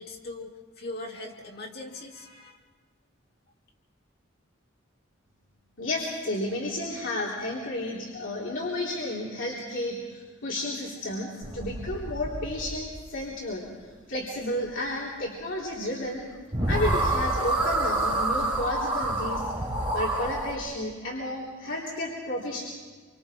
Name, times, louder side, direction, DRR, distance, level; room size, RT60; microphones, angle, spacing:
voice 1, 0.0-2.6, left 2 dB, 50° left, 0 dB, 2.6 m, -40 dB
voice 2, 5.8-13.6 14.1-16.3 16.7-19.5 19.9-22.7, left 1 dB, 65° left, -5 dB, 3.5 m, -32 dB
sound 1, 11.4-13.0 16.2-16.3 16.5-20.5, right 2 dB, 25° right, 3.9 m, -28 dB
26.5 x 25.0 x 4.5 m, 1.5 s
head